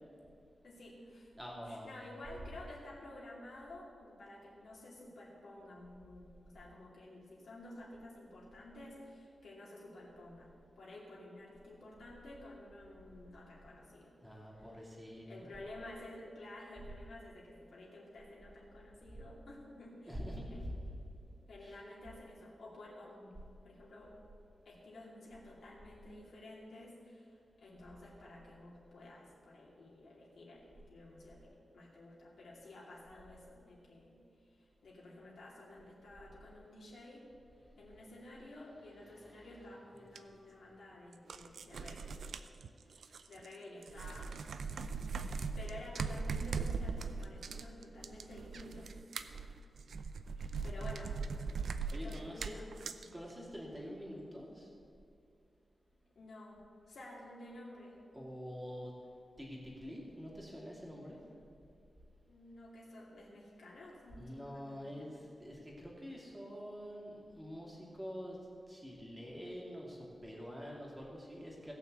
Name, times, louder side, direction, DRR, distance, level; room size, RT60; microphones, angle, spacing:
voice 1, 0.6-1.3 1.6-10.5 10.8-14.2 14.5-20.2 20.5-20.8 21.5-23.3 23.6-24.1 24.6-37.2 37.8-42.1 42.8-44.8 45.6-48.9 50.4-51.2 51.9-53.1 56.1-58.0 62.3-65.2, left 1 dB, 80° left, -5 dB, 2.6 m, -52 dB
voice 2, 1.3-2.0 14.2-15.5 20.1-20.7 21.6-21.8 39.2-39.5 51.9-52.6 53.1-54.7 58.1-58.9 59.4-61.2 64.1-68.4 68.7-71.7, equal, 10° right, -3 dB, 2.6 m, -46 dB
sound 1, 40.2-40.3 41.1-43.6 43.8-53.1, right 5 dB, 85° right, 0.6 m, -40 dB
17.0 x 6.0 x 8.2 m, 2.5 s
wide cardioid pair, 175°, 0 cm